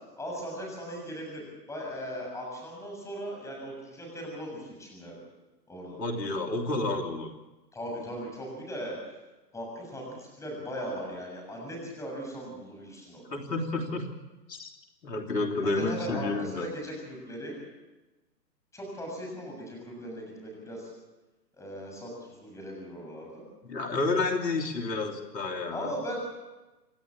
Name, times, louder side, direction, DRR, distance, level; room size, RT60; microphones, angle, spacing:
voice 1, 0.2-5.1 5.7-6.0 7.7-9.0 9.5-13.3 15.6-17.6 18.7-20.9 21.6-23.5 25.7-26.2, equal, 5° left, 0 dB, 7.1 m, -38 dB
voice 2, 6.0-7.3 13.3-14.1 14.5-14.7 15.0-16.7 23.6-25.9, left 3 dB, 80° left, 1 dB, 3.4 m, -30 dB
28.0 x 12.0 x 8.8 m, 1.1 s
hypercardioid pair, 145°, 50 cm